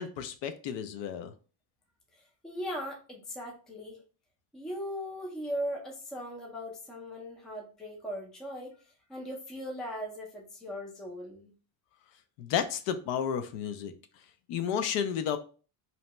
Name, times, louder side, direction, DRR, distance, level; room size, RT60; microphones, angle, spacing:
voice 1, 0.0-1.3 12.4-13.9 14.5-15.4, left 8 dB, 70° left, 9 dB, 0.5 m, -32 dB
voice 2, 2.1-4.0 4.5-8.8 9.1-11.5, equal, ahead, 0 dB, 0.3 m, -39 dB
2.8 x 2.1 x 2.9 m, 0.36 s
cardioid pair, 135°, 47 cm